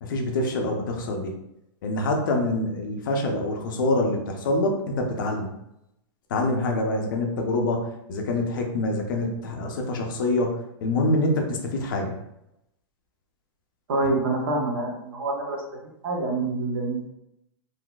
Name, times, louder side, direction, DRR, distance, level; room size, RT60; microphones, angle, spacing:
voice 1, 0.0-1.3 1.8-5.5 6.3-12.1, left 2 dB, 45° left, 2 dB, 0.6 m, -26 dB
voice 2, 13.9-15.6 16.0-17.1, right 2 dB, 55° right, -1 dB, 1.0 m, -26 dB
3.9 x 2.7 x 2.3 m, 0.83 s
hypercardioid pair, 170°, 15 cm